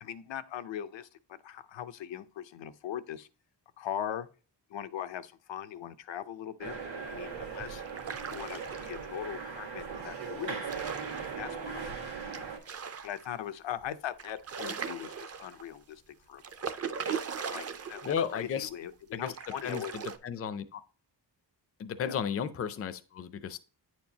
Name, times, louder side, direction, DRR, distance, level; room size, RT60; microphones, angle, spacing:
voice 1, 0.0-3.3 3.8-4.3 4.7-6.7 7.1-7.8 8.3-10.8 11.4-11.9 13.0-16.7 17.4-20.0 22.0-22.2, left 10 dB, 90° left, 0.7 m, -40 dB
sound 1, 6.6-12.6, right 5 dB, 90° right, 1.9 m, -39 dB
sound 2, 7.8-9.2 10.4-11.5 12.3-13.3 13.8-13.9 14.2-15.7 16.4-18.3 18.6-18.7 19.3-20.2, right 6 dB, 35° right, 0.5 m, -39 dB
voice 2, 18.0-18.7 19.1-19.3 19.6-20.8 21.8-23.6, left 7 dB, 35° left, 0.4 m, -34 dB
9.1 x 4.5 x 2.7 m
wide cardioid pair, 175°, 43 cm